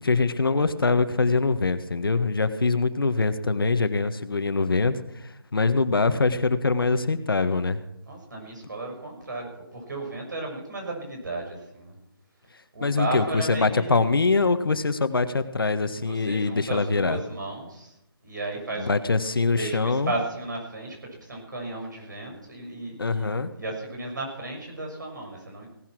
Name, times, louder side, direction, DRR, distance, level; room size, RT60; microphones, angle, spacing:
voice 1, 0.0-7.8 12.8-17.2 18.8-20.1 23.0-23.5, left 3 dB, 70° left, 10 dB, 1.4 m, -23 dB
voice 2, 8.1-12.0 12.7-14.1 15.9-17.9 18.2-19.2 19.6-21.0 21.2-25.7, right 2 dB, 50° right, 1 dB, 6.4 m, -34 dB
17.5 x 11.0 x 6.2 m, 0.82 s
hypercardioid pair, 180°, 13 cm